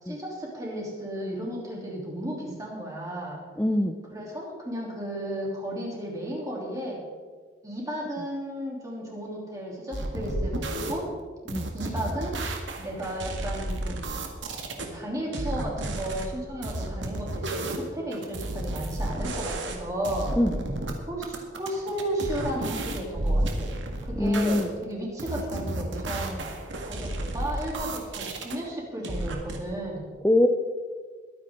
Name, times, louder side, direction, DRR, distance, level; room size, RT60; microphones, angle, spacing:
voice 1, 0.0-3.4 4.1-7.0 7.6-11.1 11.7-12.3 12.8-14.1 14.7-20.4 21.1-23.7 24.0-26.4 26.8-30.1, right 1 dB, 15° right, -3 dB, 3.2 m, -34 dB
voice 2, 3.6-4.0 11.5-11.7 20.4-20.5 24.1-24.7 30.2-30.5, left 1 dB, 10° left, 3 dB, 0.6 m, -23 dB
sound 1, 9.9-10.9 11.5-14.9 15.3-16.3 16.6-19.8 20.0-20.9 21.2-24.6 25.2-28.6 29.0-29.6, right 1 dB, 70° right, 1.8 m, -32 dB
22.0 x 9.7 x 3.8 m, 1.5 s
head